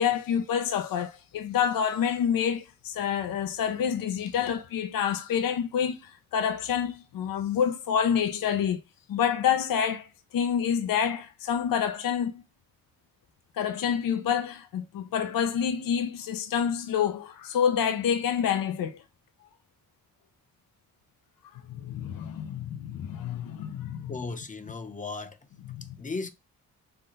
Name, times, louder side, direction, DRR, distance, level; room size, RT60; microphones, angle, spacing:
voice 1, 0.0-8.8 9.1-10.1 10.3-12.3 13.6-19.0 21.5-24.2 25.6-26.0, left 8 dB, 70° left, 0.6 m, -28 dB
voice 2, 24.1-25.4 26.0-26.3, left 3 dB, 20° left, 0.7 m, -35 dB
5.7 x 2.2 x 3.8 m
cardioid pair, 85°, 35 cm